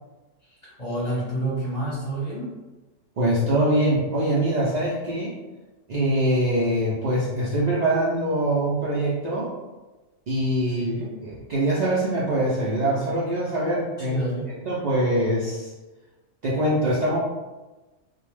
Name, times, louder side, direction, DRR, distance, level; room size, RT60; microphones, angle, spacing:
voice 1, 0.5-2.5 10.7-11.2 14.0-14.4, right 1 dB, 30° left, -9 dB, 0.8 m, -30 dB
voice 2, 3.2-5.3 5.9-9.5 10.3-10.9 11.2-14.2 14.5-15.7 16.4-17.2, right 1 dB, 70° right, -7 dB, 0.4 m, -23 dB
2.2 x 2.0 x 3.1 m, 1.2 s
omnidirectional pair, 1.3 m